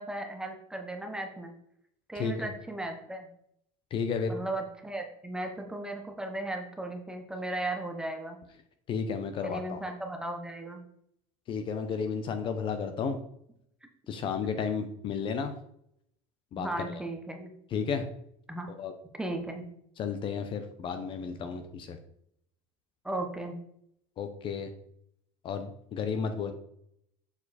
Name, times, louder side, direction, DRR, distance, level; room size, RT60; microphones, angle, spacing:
voice 1, 0.0-1.5 2.1-3.3 4.3-8.4 9.4-10.8 16.6-17.5 18.5-18.7 19.2-19.7 23.0-23.6, right 1 dB, 5° right, 3 dB, 0.9 m, -36 dB
voice 2, 2.1-2.5 3.9-4.4 8.9-9.8 11.5-13.2 14.1-15.5 16.5-16.7 17.7-18.1 18.8-18.9 20.0-22.0 24.2-24.7 25.4-26.5, left 6 dB, 35° left, 8 dB, 0.7 m, -32 dB
7.0 x 4.5 x 4.1 m, 0.72 s
cardioid pair, 150°, 14 cm